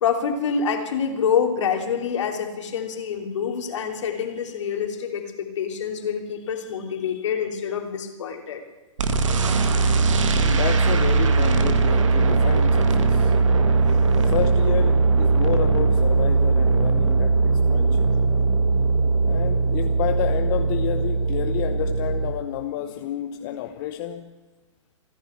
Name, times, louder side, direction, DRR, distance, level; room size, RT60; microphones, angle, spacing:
voice 1, 0.0-8.6, left 7 dB, 65° left, 4 dB, 3.0 m, -26 dB
sound 1, 9.0-22.3, right 4 dB, 75° right, 1.9 m, -20 dB
voice 2, 10.3-13.3 14.1-18.1 19.2-24.3, left 12 dB, 40° left, 6 dB, 0.9 m, -30 dB
28.5 x 11.0 x 4.5 m, 1.2 s
hypercardioid pair, 140°, 16 cm